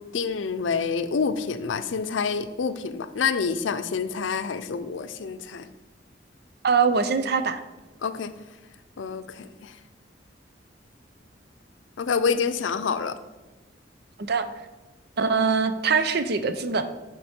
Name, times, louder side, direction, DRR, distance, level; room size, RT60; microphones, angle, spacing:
voice 1, 0.1-5.7 8.0-8.3 9.0-9.7 12.0-13.2, left 5 dB, 90° left, 11 dB, 0.5 m, -27 dB
voice 2, 6.6-7.6 14.3-14.5 15.2-16.8, right 5 dB, 60° right, 9 dB, 0.6 m, -22 dB
11.0 x 4.6 x 4.3 m, 1.2 s
head